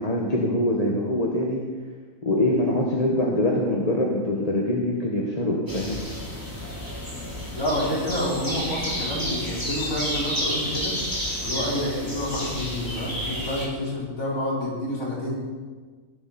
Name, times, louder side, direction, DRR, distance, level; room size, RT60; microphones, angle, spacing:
voice 1, 0.0-1.6 2.2-6.0, left 1 dB, 25° left, -2 dB, 1.4 m, -24 dB
sound 1, 5.7-13.7, equal, 15° right, 3.6 m, -31 dB
voice 2, 7.5-11.0 11.4-15.4, left 1 dB, 60° left, -6 dB, 5.0 m, -28 dB
16.5 x 12.0 x 4.3 m, 1.5 s
omnidirectional pair, 1.6 m